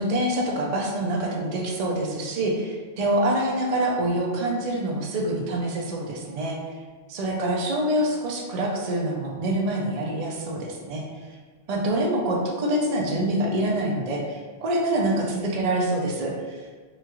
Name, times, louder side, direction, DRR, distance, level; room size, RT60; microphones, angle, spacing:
voice 1, 0.0-6.6 7.1-11.0 11.7-16.7, right 1 dB, 55° right, -1 dB, 0.4 m, -26 dB
2.9 x 2.3 x 2.9 m, 1.5 s
omnidirectional pair, 1.2 m